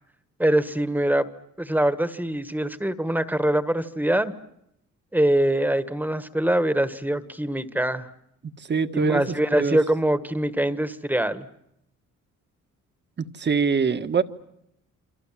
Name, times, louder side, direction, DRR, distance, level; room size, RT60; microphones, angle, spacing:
voice 1, 0.4-1.3 1.6-4.3 5.1-8.1 8.9-11.5, right 1 dB, 5° right, 12 dB, 1.6 m, -23 dB
voice 2, 8.6-9.2 9.6-9.8 13.2-14.2, right 5 dB, 35° right, 10 dB, 1.5 m, -23 dB
28.0 x 25.0 x 7.6 m, 0.80 s
cardioid pair, 90°, 30 cm